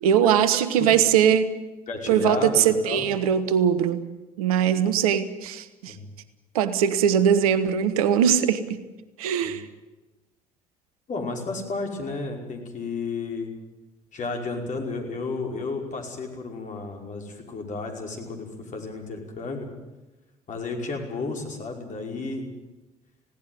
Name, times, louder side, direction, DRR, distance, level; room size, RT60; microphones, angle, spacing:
voice 1, 0.0-1.5 2.1-4.0 4.4-5.9 6.5-8.8 9.2-9.6, right 8 dB, 75° right, 13 dB, 1.2 m, -21 dB
voice 2, 1.9-3.1 5.9-6.1 9.4-9.6 11.1-13.5 14.1-19.7 20.5-22.5, left 3 dB, 40° left, 2 dB, 5.4 m, -32 dB
19.5 x 17.0 x 9.4 m, 1.1 s
figure-of-eight pair, 55°, 19 cm